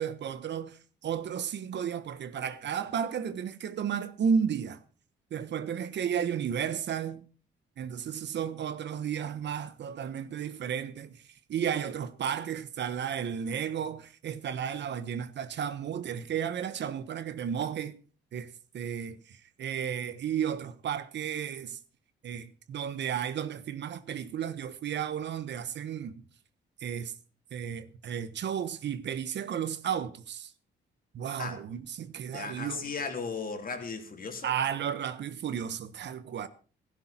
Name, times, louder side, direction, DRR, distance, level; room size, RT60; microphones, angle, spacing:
voice 1, 0.0-4.8 5.3-7.2 7.8-11.2 11.5-17.9 18.3-21.8 22.2-26.2 26.8-27.1 27.5-30.5 31.1-32.9 34.4-36.5, right 8 dB, 60° right, 1.3 m, -33 dB
voice 2, 32.3-34.5, left 5 dB, 45° left, 3.5 m, -36 dB
15.5 x 13.0 x 4.5 m
cardioid pair, 90°, 20 cm